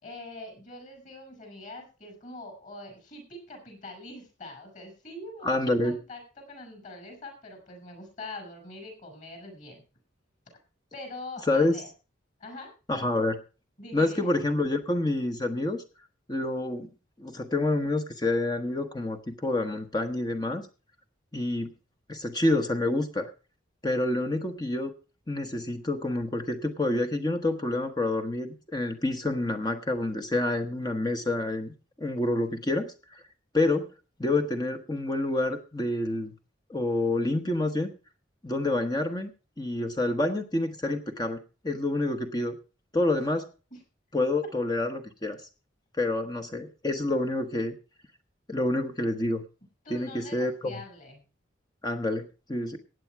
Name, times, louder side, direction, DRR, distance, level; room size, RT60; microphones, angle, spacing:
voice 1, 0.0-9.8 10.9-11.9 12.4-12.7 13.8-14.3 43.7-43.8 49.8-51.2, left 2 dB, 40° left, 5 dB, 6.0 m, -43 dB
voice 2, 5.4-5.9 11.5-11.7 12.9-13.4 13.9-15.8 16.3-16.9 17.2-20.7 21.3-21.7 22.1-23.3 23.8-24.9 25.3-33.2 33.5-33.9 34.2-36.3 36.7-37.9 38.4-39.3 39.6-42.6 42.9-43.5 44.1-45.4 46.0-47.8 48.5-49.4 49.9-50.8 51.8-52.8, left 2 dB, 20° left, 6 dB, 1.1 m, -28 dB
16.0 x 9.1 x 4.6 m, 0.34 s
head